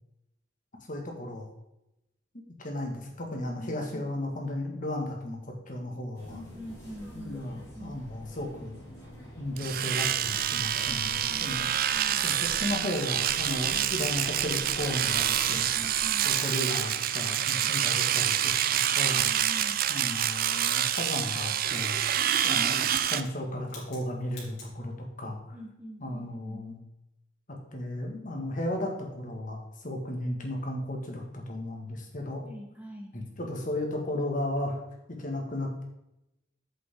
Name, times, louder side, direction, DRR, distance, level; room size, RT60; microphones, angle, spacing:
voice 1, 0.9-1.5 2.6-6.4 7.1-8.8 9.4-11.7 12.2-15.7 16.2-19.3 19.9-22.0 22.4-24.9 25.2-25.4 26.0-26.8 27.7-32.4 33.1-34.8 35.1-35.8, left 1 dB, 45° left, 1 dB, 1.8 m, -34 dB
voice 2, 3.5-4.1 6.3-8.0 10.9-12.2 15.3-16.3 17.6-17.9 19.0-19.8 22.1-22.7 25.5-26.6 32.4-33.2, equal, 10° right, 0 dB, 1.0 m, -45 dB
sound 1, 6.1-16.3, equal, 15° left, 3.5 m, -46 dB
Domestic sounds home sounds, 9.6-23.2, right 10 dB, 50° right, 0.4 m, -27 dB
sound 2, 20.2-22.0 22.4-22.7 23.0-23.4 23.7-24.0 24.3-24.7, left 3 dB, 65° left, 3.4 m, -49 dB
8.3 x 7.8 x 3.7 m, 0.87 s
head